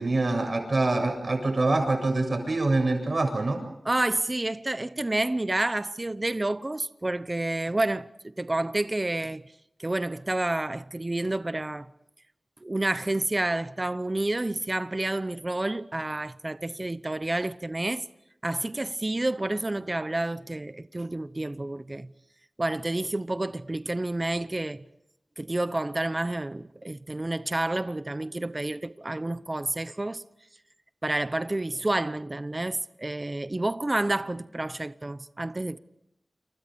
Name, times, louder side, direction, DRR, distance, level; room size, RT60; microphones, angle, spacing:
voice 1, 0.0-3.6, right 2 dB, 50° right, 7.6 m, -25 dB
voice 2, 3.8-9.4 9.8-11.9 12.6-18.0 18.4-22.1 22.6-24.8 25.4-30.2 31.0-35.8, right 2 dB, 30° right, 0.9 m, -29 dB
29.5 x 28.5 x 5.3 m
wide cardioid pair, 90°, 0 cm